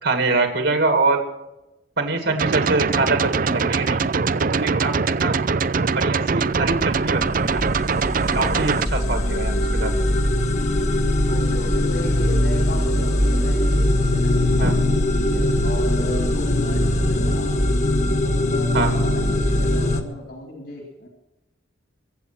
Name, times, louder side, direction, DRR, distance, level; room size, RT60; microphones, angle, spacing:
voice 1, 0.0-1.2 2.0-4.0 4.3-5.3 5.9-7.6 8.3-9.9 14.6-14.7 18.7-18.9, right 3 dB, 70° right, 5 dB, 2.3 m, -23 dB
sound 1, 2.4-8.9, right 5 dB, 45° right, 0.5 m, -22 dB
sound 2, 6.6-20.0, left 1 dB, 35° left, 1.4 m, -21 dB
voice 2, 11.3-17.5 18.2-21.1, left 2 dB, 60° left, 1 dB, 3.0 m, -35 dB
22.5 x 8.5 x 6.1 m, 0.96 s
head